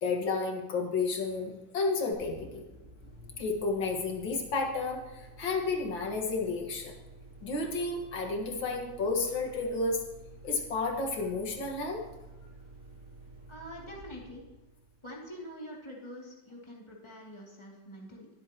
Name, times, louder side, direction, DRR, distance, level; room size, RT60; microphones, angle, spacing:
voice 1, 0.0-2.6 3.4-6.9 7.4-10.0 10.4-12.0, left 3 dB, 90° left, 1 dB, 2.5 m, -31 dB
sound 1, 2.1-15.6, right 2 dB, 35° right, 3.2 m, -51 dB
voice 2, 13.5-14.4 15.0-18.3, equal, 15° left, -3 dB, 2.6 m, -45 dB
22.0 x 8.1 x 3.0 m, 1.1 s
omnidirectional pair, 2.0 m